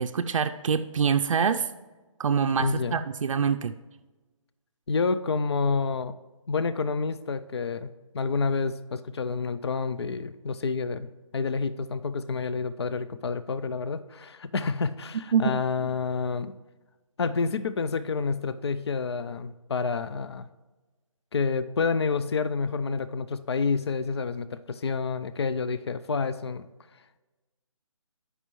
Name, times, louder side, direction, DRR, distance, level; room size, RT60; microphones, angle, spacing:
voice 1, 0.0-1.7 2.2-3.7 15.3-15.9, right 6 dB, 70° right, 7 dB, 0.4 m, -25 dB
voice 2, 2.6-3.0 4.9-6.1 6.5-16.5 17.2-20.5 21.3-26.7, left 4 dB, 50° left, 13 dB, 0.4 m, -29 dB
14.5 x 5.5 x 3.1 m, 1.2 s
hypercardioid pair, 180°, 17 cm